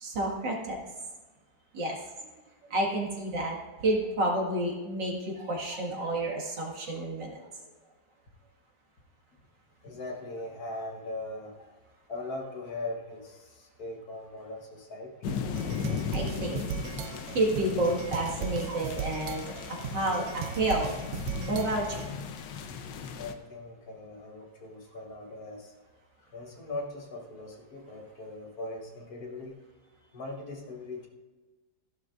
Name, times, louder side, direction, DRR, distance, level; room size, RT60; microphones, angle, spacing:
voice 1, 0.0-0.8 1.7-1.9 2.7-3.6 3.8-5.1 5.4-7.3 16.1-16.6 17.3-19.4 19.9-20.9 21.5-22.0, right 1 dB, 70° right, -2 dB, 2.6 m, -29 dB
voice 2, 9.8-11.6 12.1-15.3 17.3-17.4 23.2-25.7 26.3-29.6 30.1-31.1, left 2 dB, 55° left, 1 dB, 1.6 m, -40 dB
sound 1, 15.2-23.3, left 7 dB, 75° left, 1.4 m, -37 dB
sound 2, 15.3-22.1, right 9 dB, 90° right, 1.4 m, -38 dB
14.5 x 11.0 x 2.5 m, 1.2 s
omnidirectional pair, 2.0 m